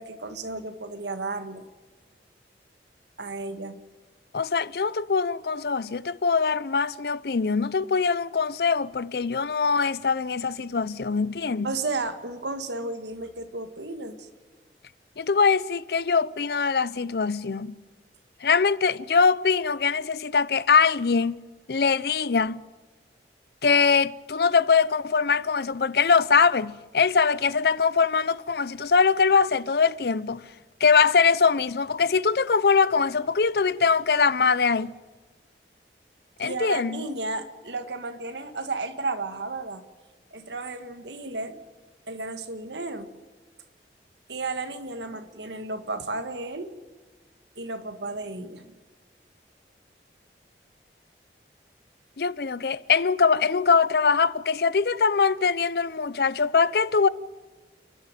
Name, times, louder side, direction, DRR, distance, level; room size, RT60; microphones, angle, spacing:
voice 1, 0.0-1.7 3.2-3.8 11.6-14.3 36.4-39.8 40.3-41.6 42.1-43.1 44.3-46.7 47.6-48.7, right 3 dB, 85° right, 1.7 m, -33 dB
voice 2, 4.3-11.7 15.2-17.7 18.4-21.4 21.7-22.6 23.6-30.4 30.8-34.9 36.4-37.0 52.2-57.1, left 5 dB, 65° left, 0.6 m, -22 dB
30.0 x 11.5 x 9.1 m
head